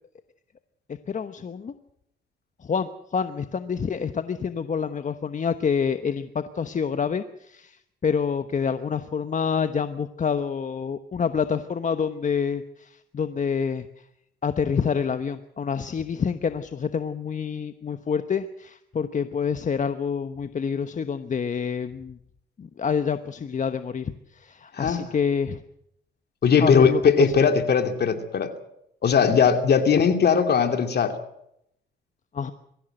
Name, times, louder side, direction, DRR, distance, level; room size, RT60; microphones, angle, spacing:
voice 1, 1.1-1.7 2.6-7.8 8.0-13.9 14.4-22.2 22.6-25.6 26.6-27.0 32.3-32.5, left 6 dB, 40° left, 10 dB, 1.1 m, -27 dB
voice 2, 26.4-28.5 29.0-31.1, left 6 dB, 55° left, 7 dB, 2.6 m, -19 dB
23.0 x 15.0 x 7.9 m, 0.77 s
cardioid pair, 90°, 20 cm